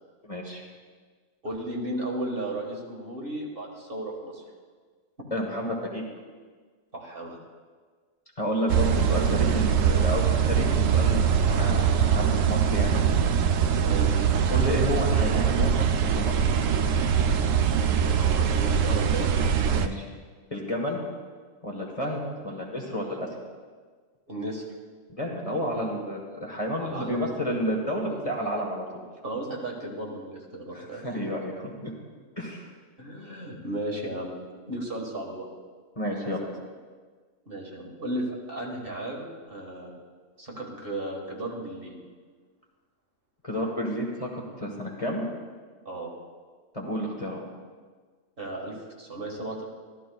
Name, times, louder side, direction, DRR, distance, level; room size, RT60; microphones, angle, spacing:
voice 1, 0.2-0.6 5.3-6.0 8.4-13.0 14.5-16.6 19.7-20.1 20.5-21.0 21.6-23.3 25.1-28.8 30.7-31.9 32.4-32.7 36.0-36.4 43.4-45.2 46.7-47.4, equal, 30° left, -1 dB, 1.2 m, -31 dB
voice 2, 1.4-4.4 6.9-7.4 13.7-14.2 18.2-19.3 24.3-24.7 26.7-27.4 29.2-31.0 33.0-34.4 34.7-35.5 36.2-36.3 37.5-39.9 40.4-42.0 45.9-46.1 48.4-49.6, right 1 dB, 45° right, -2 dB, 1.8 m, -35 dB
sound 1, 8.7-19.9, right 7 dB, 90° right, 1.0 m, -23 dB
14.0 x 12.5 x 2.3 m, 1.5 s
omnidirectional pair, 1.3 m